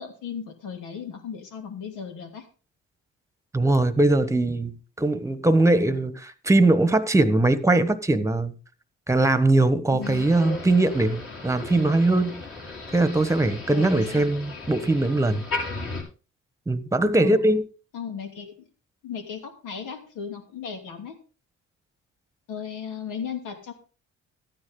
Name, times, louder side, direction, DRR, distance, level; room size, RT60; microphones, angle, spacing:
voice 1, 0.0-2.5 9.9-10.3 13.7-14.2 17.2-17.5 17.9-18.7 19.0-21.2 22.5-23.7, left 7 dB, 85° left, 2.9 m, -36 dB
voice 2, 3.5-8.5 9.1-12.4 12.9-15.4 16.7-17.6, right 2 dB, 10° right, 1.2 m, -21 dB
Motor vehicle (road), 10.0-16.0, left 3 dB, 45° left, 5.5 m, -36 dB
13.5 x 9.7 x 3.8 m
cardioid pair, 90°, 30 cm